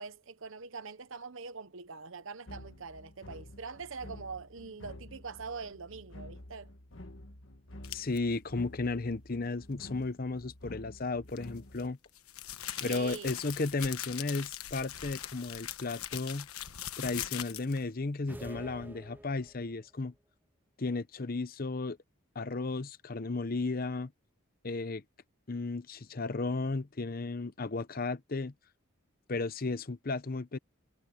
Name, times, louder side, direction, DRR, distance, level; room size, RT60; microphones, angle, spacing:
voice 1, 0.0-6.7 12.8-13.4, right 4 dB, 65° right, 0.9 m, -43 dB
sound 1, 2.5-11.9, left 1 dB, 60° left, 1.6 m, -50 dB
sound 2, 7.8-8.2 11.3-17.9, left 11 dB, 90° left, 1.2 m, -41 dB
voice 2, 7.9-12.0 12.8-16.5 17.0-20.1 20.8-22.0 22.3-24.1 24.6-25.0 25.5-28.5 29.3-30.6, left 3 dB, 40° left, 0.7 m, -34 dB
sound 3, 18.3-19.8, right 1 dB, 10° right, 0.5 m, -48 dB
head